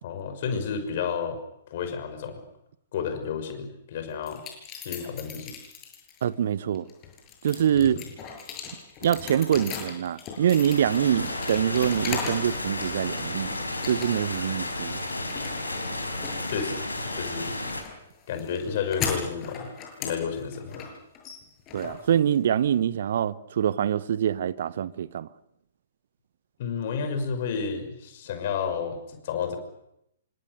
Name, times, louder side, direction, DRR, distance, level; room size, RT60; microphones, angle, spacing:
voice 1, 0.0-1.4 1.7-2.4 2.9-4.4 4.8-5.5 7.7-8.1 16.5-16.8 17.1-17.5 18.3-19.7 20.0-20.9 26.6-29.6, left 6 dB, 45° left, 5.9 m, -31 dB
sound 1, 4.2-6.2 6.8-12.5 12.8-13.4 13.8-14.4 14.7-22.6, left 6 dB, 25° left, 7.8 m, -38 dB
voice 2, 6.2-6.9 7.4-8.0 9.0-13.6 13.9-15.0 21.7-25.3, right 9 dB, 50° right, 1.1 m, -25 dB
sound 2, 10.3-17.8, left 2 dB, 80° left, 5.5 m, -32 dB
28.5 x 25.5 x 6.8 m
figure-of-eight pair, 120°, 0 cm